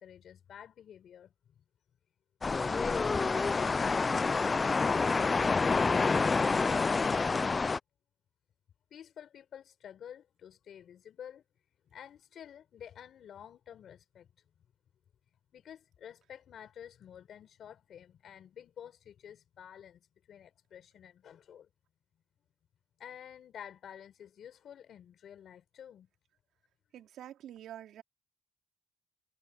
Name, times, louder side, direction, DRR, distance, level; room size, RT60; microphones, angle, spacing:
voice 1, 0.0-1.3 2.8-7.3 8.9-11.4 11.9-14.3 15.5-21.7 23.0-26.1, left 9 dB, 65° left, 4.8 m, -50 dB
sound 1, 2.4-7.8, left 4 dB, 30° left, 0.3 m, -28 dB
voice 2, 26.9-28.0, right 11 dB, 75° right, 4.2 m, -47 dB
cardioid pair, 90°, 0 cm